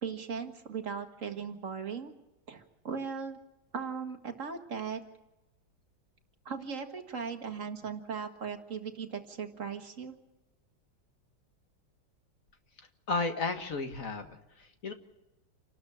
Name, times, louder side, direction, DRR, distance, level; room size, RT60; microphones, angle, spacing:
voice 1, 0.0-2.1 2.5-3.4 3.7-5.0 6.5-10.1, right 6 dB, 40° right, 5 dB, 2.0 m, -38 dB
voice 2, 13.1-14.9, left 3 dB, 45° left, 6 dB, 1.8 m, -33 dB
28.5 x 12.5 x 8.6 m, 0.99 s
omnidirectional pair, 2.2 m